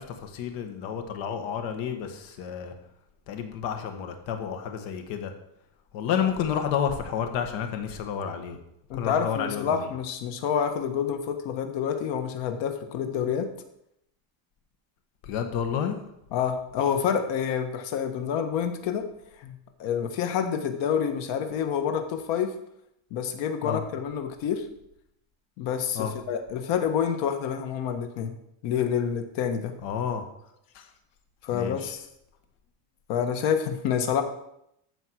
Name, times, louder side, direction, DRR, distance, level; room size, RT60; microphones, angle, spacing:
voice 1, 0.0-2.7 3.3-5.3 5.9-8.6 8.9-9.9 15.2-16.0 23.6-23.8 26.0-26.1 29.8-30.2 30.8-30.9 31.5-31.9, left 8 dB, 85° left, 6 dB, 1.8 m, -30 dB
voice 2, 8.9-13.5 16.3-19.0 19.4-22.5 23.1-24.6 25.6-28.3 28.6-29.7 31.4-32.0 33.1-34.2, left 8 dB, 65° left, 7 dB, 1.5 m, -28 dB
14.0 x 4.7 x 6.3 m, 0.79 s
cardioid pair, 180°, 45 cm